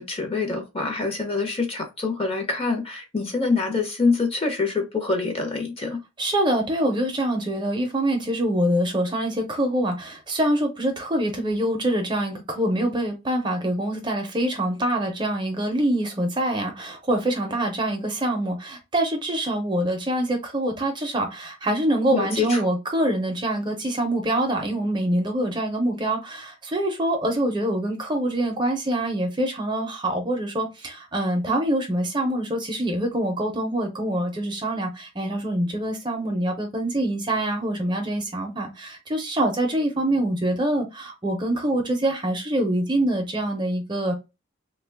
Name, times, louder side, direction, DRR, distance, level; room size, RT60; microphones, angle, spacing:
voice 1, 0.0-6.0 22.1-22.6, left 4 dB, 30° left, 0.7 m, -25 dB
voice 2, 6.2-44.1, right 1 dB, 20° right, 0.5 m, -25 dB
3.2 x 2.2 x 3.3 m
head